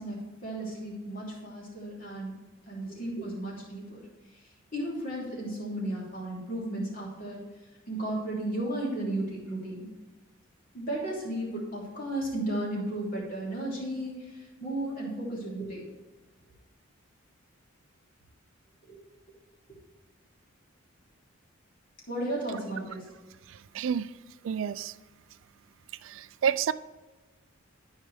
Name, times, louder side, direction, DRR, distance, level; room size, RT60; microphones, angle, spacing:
voice 1, 0.0-2.3 2.7-4.0 4.7-7.4 7.9-9.8 10.7-14.1 14.6-15.9 18.9-19.0 22.1-23.0, right 1 dB, 40° left, -4 dB, 3.1 m, -34 dB
voice 2, 23.5-24.1 24.4-24.9 26.0-26.7, right 8 dB, 65° right, 16 dB, 0.3 m, -29 dB
13.0 x 5.6 x 3.4 m, 1.2 s
head